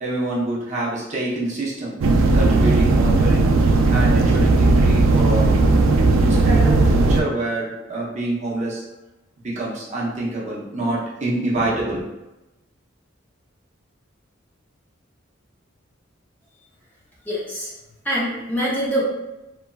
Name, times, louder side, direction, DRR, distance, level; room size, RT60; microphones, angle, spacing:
voice 1, 0.0-2.0 2.3-3.5 3.9-5.5 6.2-8.8 9.4-12.0, right 2 dB, 35° right, -6 dB, 0.6 m, -26 dB
sound 1, 2.0-7.2, right 3 dB, 80° right, 0.3 m, -16 dB
voice 2, 17.3-17.7 18.0-19.0, equal, 10° left, -7 dB, 0.6 m, -24 dB
3.0 x 2.4 x 2.3 m, 0.99 s
head